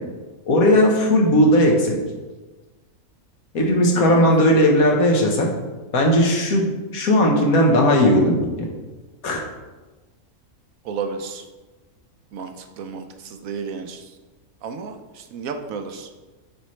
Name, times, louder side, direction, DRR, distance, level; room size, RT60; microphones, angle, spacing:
voice 1, 0.5-2.0 3.5-5.5 5.9-8.4 9.2-9.4, equal, 80° left, 0 dB, 1.5 m, -17 dB
voice 2, 3.9-4.3 10.8-11.4 12.3-14.2 14.6-16.1, right 5 dB, 75° right, 6 dB, 1.0 m, -32 dB
8.8 x 4.3 x 3.2 m, 1.2 s
omnidirectional pair, 1.5 m